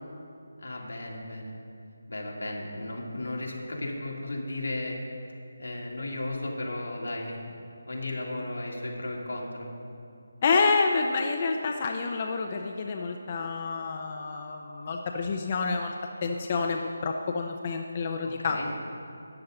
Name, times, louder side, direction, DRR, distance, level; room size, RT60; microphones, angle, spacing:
voice 1, 0.6-1.5 2.1-5.0 5.6-7.4 7.9-9.7 18.2-18.7, left 1 dB, 85° left, -2 dB, 2.3 m, -35 dB
voice 2, 10.4-15.9 16.2-18.7, left 4 dB, 35° left, 3 dB, 0.6 m, -28 dB
13.0 x 8.6 x 3.9 m, 2.4 s
figure-of-eight pair, 160°, 0 cm